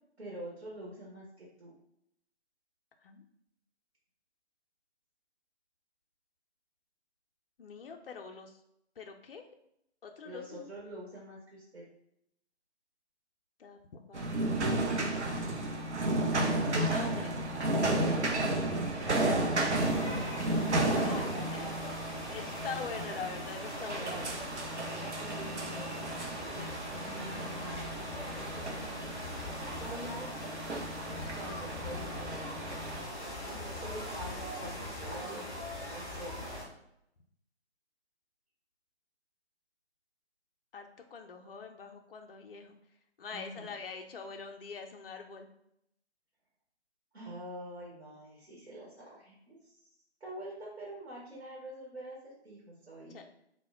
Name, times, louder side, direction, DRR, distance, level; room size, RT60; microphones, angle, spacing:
voice 1, 0.2-1.7 10.2-11.8 18.1-20.4 21.3-22.4 24.1-24.3 24.8-26.7 26.9-27.8 29.6-30.5 31.3-32.6 33.4-35.6 35.9-36.4 43.3-43.7 47.1-49.8 50.2-53.2, right 1 dB, 70° right, -4 dB, 1.0 m, -46 dB
voice 2, 7.6-8.6 9.0-9.4 10.0-10.7 13.6-14.3 16.7-17.3 20.7-21.8 22.1-24.3 31.7-32.0 40.7-42.8 43.2-45.5 53.1-53.2, left 5 dB, 55° left, 4 dB, 0.4 m, -44 dB
sound 1, 14.1-33.0, right 1 dB, 85° right, 0.5 m, -33 dB
sound 2, 19.7-36.6, left 1 dB, 5° right, 0.6 m, -41 dB
2.1 x 2.0 x 3.4 m, 0.76 s
figure-of-eight pair, 140°, 34 cm